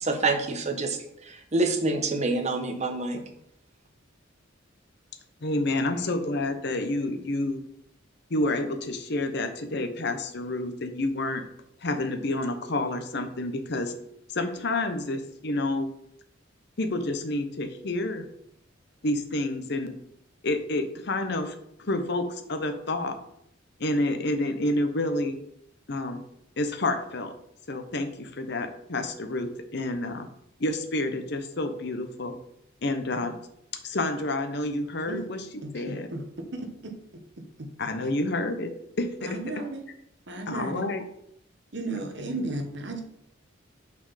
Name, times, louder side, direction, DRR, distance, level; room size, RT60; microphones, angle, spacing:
voice 1, 0.0-1.0 1.3-3.2, right 3 dB, 35° right, 5 dB, 0.9 m, -26 dB
voice 2, 5.4-7.6 8.3-11.4 11.8-13.9 14.3-15.9 16.8-18.3 19.0-20.0 20.4-23.2 23.8-25.4 25.9-26.2 26.6-27.3 27.7-30.3 30.6-32.4 32.8-33.4 33.7-35.4 35.7-36.1 37.8-38.7 39.0-39.4 40.5-41.0, left 2 dB, 55° left, 7 dB, 0.8 m, -29 dB
voice 3, 35.6-36.2 36.5-36.7 37.6-37.7 39.2-39.8 40.3-40.9 41.7-43.0, right 2 dB, 60° right, 4 dB, 1.2 m, -34 dB
6.1 x 4.4 x 5.6 m, 0.73 s
head